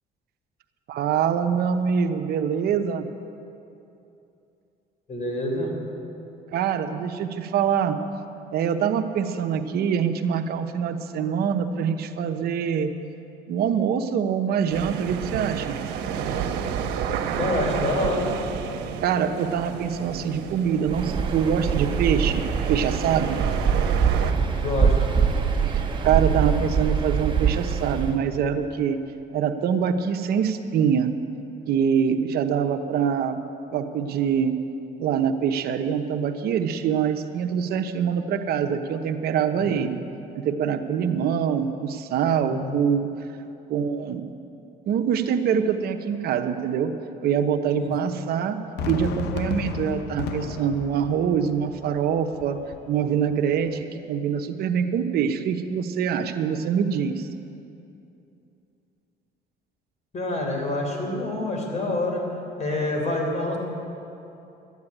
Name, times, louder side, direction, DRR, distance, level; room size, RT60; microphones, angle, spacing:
voice 1, 0.9-3.1 6.5-8.0 8.5-12.9 13.5-15.8 19.0-22.4 22.7-23.4 25.6-29.0 29.3-31.1 31.7-33.4 33.7-34.5 35.0-40.0 40.4-43.1 43.7-44.3 44.9-46.9 47.2-48.6 48.8-52.6 52.9-57.3, right 7 dB, 70° right, 7 dB, 0.9 m, -24 dB
voice 2, 5.1-5.7 17.4-18.3 24.4-24.9 39.6-39.9 42.4-42.8 47.8-47.9 60.1-62.2 62.6-63.6, left 2 dB, 45° left, 1 dB, 3.9 m, -27 dB
sound 1, 14.7-24.3, right 7 dB, 90° right, 1.0 m, -31 dB
Waves surf, 20.9-28.2, right 6 dB, 30° right, 1.4 m, -23 dB
Fireworks, 48.8-53.8, left 6 dB, 85° left, 0.8 m, -34 dB
13.0 x 9.6 x 9.8 m, 2.8 s
cardioid pair, 110°, 17 cm